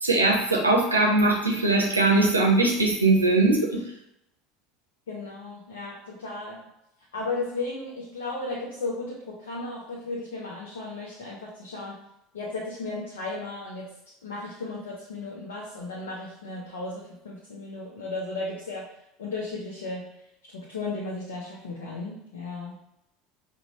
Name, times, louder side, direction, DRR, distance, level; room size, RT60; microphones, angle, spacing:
voice 1, 0.0-3.8, right 2 dB, 85° right, -1 dB, 0.7 m, -21 dB
voice 2, 5.1-6.7 7.1-12.0 12.3-13.9 14.2-18.9 19.2-20.1 20.5-22.8, left 3 dB, 70° left, -3 dB, 0.6 m, -35 dB
4.9 x 2.2 x 3.0 m, 0.82 s
figure-of-eight pair, 70°, 0 cm